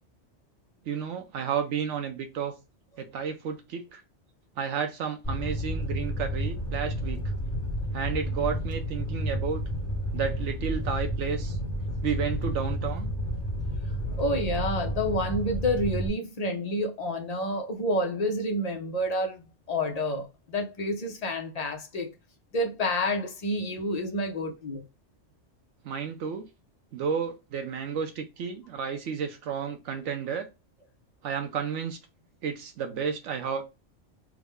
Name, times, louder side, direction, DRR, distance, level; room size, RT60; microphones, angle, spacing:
voice 1, 0.9-2.5 3.0-4.0 4.6-7.2 7.9-9.6 10.1-11.6 12.0-13.1 25.8-26.4 26.9-30.5 31.2-32.0 32.4-33.6, right 7 dB, 85° right, 0.9 m, -32 dB
Fire, 5.2-16.1, equal, 15° left, 0.8 m, -31 dB
voice 2, 14.0-22.1 22.5-24.8, left 1 dB, 40° left, 0.6 m, -29 dB
3.6 x 2.1 x 3.4 m
omnidirectional pair, 1.2 m